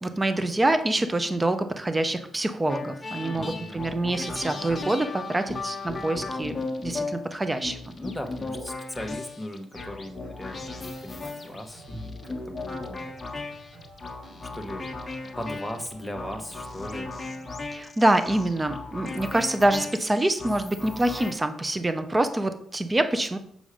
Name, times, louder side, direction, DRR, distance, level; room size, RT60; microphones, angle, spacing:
voice 1, 0.0-6.6 6.8-7.8 17.7-23.4, right 1 dB, 20° right, 9 dB, 0.7 m, -25 dB
sound 1, 2.7-21.3, left 3 dB, 25° left, 1.3 m, -36 dB
voice 2, 3.2-3.8 8.0-13.2 14.5-15.0 15.4-17.1, equal, ahead, 3 dB, 1.3 m, -38 dB
sound 2, 9.7-17.7, right 1 dB, 80° right, 3.5 m, -51 dB
7.2 x 6.3 x 5.0 m, 0.67 s
cardioid pair, 95°, 0 cm